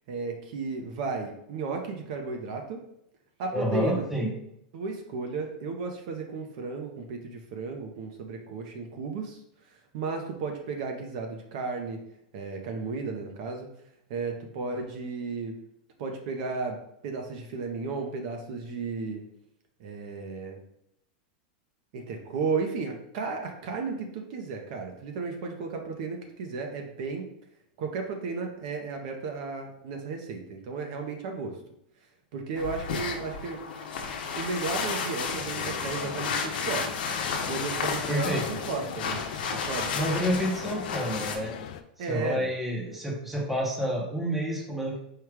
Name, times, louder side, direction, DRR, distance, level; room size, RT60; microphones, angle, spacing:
voice 1, 0.1-2.8 3.4-4.1 4.7-9.4 9.7-12.0 12.3-13.7 14.1-15.6 16.0-19.2 19.8-20.6 21.9-27.3 27.8-31.6 32.3-33.6 34.3-36.9 37.5-39.2 39.5-40.0 42.0-42.5, right 4 dB, 50° right, 3 dB, 0.7 m, -34 dB
voice 2, 3.5-4.3 38.1-38.4 40.0-41.5 42.0-45.0, equal, 5° right, -3 dB, 0.7 m, -29 dB
sound 1, 32.6-41.4, left 5 dB, 85° left, 0.8 m, -32 dB
sound 2, 35.3-41.8, left 9 dB, 55° left, 0.4 m, -39 dB
4.7 x 2.3 x 4.7 m, 0.77 s
supercardioid pair, 170°, 5 cm